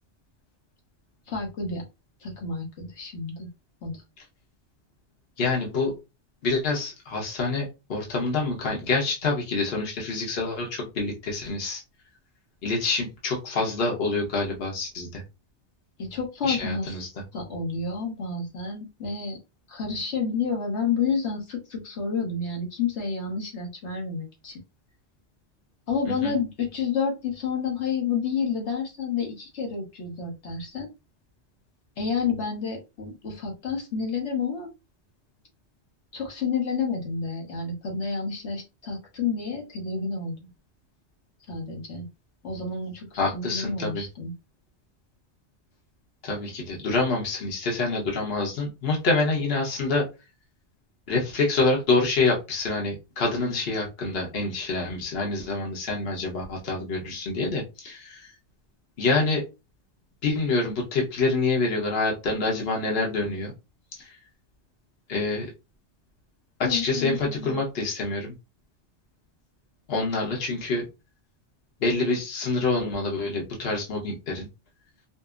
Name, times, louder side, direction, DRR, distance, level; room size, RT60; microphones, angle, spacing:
voice 1, 1.3-1.8 2.2-3.5 3.8-4.0 16.0-17.0 17.3-19.4 19.7-24.6 25.9-30.9 32.0-34.7 36.1-40.5 41.5-42.1 42.4-44.3 66.6-67.6, left 5 dB, 75° left, -1 dB, 1.3 m, -30 dB
voice 2, 5.4-5.9 6.4-11.8 12.6-15.2 16.4-17.1 26.1-26.3 43.2-44.0 46.2-50.1 51.1-58.3 59.0-59.4 60.2-63.5 63.9-64.1 65.1-65.5 66.6-68.3 69.9-70.8 71.8-74.5, left 3 dB, 60° left, -1 dB, 1.2 m, -26 dB
5.1 x 2.0 x 2.4 m, 0.27 s
omnidirectional pair, 1.2 m